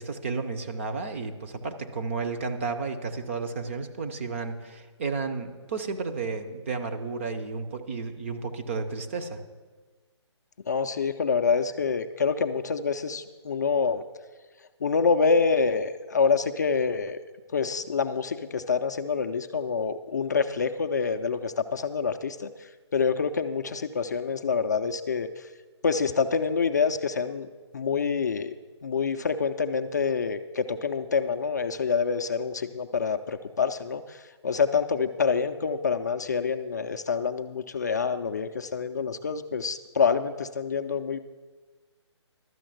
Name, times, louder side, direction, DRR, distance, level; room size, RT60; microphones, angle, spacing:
voice 1, 0.0-9.4, right 4 dB, 25° right, 6 dB, 0.7 m, -32 dB
voice 2, 10.7-14.0 14.8-17.2 17.5-25.5 25.8-27.5 27.7-28.5 28.8-41.2, left 5 dB, 35° left, 8 dB, 0.4 m, -27 dB
12.0 x 6.4 x 7.7 m, 1.4 s
hypercardioid pair, 165°, 15 cm